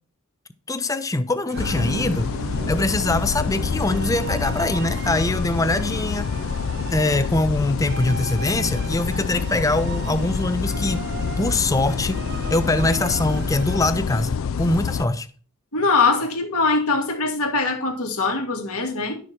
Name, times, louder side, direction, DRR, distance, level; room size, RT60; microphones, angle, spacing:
voice 1, 0.7-2.3 2.7-6.3 6.9-11.0 11.4-12.2 12.5-15.3, left 2 dB, 15° left, 0.5 m, -23 dB
sound 1, 1.5-13.9, right 3 dB, 50° right, 0.7 m, -35 dB
sound 2, 1.6-15.1, left 6 dB, 70° left, 0.4 m, -27 dB
voice 2, 15.7-19.2, left 3 dB, 85° left, 2.3 m, -22 dB
11.0 x 6.3 x 4.4 m
head